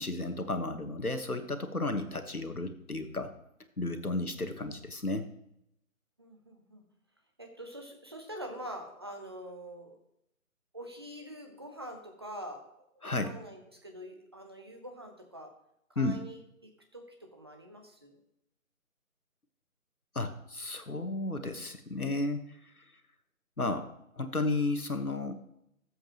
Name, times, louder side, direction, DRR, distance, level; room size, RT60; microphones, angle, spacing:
voice 1, 0.0-3.3 3.8-5.3 13.0-13.3 16.0-16.2 20.1-22.7 23.6-23.9 24.2-25.3, left 2 dB, 90° left, 8 dB, 1.5 m, -33 dB
voice 2, 4.1-4.5 6.2-6.8 7.4-10.0 10.7-15.5 15.9-18.2, equal, 20° right, 3 dB, 0.8 m, -45 dB
17.5 x 7.9 x 2.9 m, 0.79 s
figure-of-eight pair, 150°, 43 cm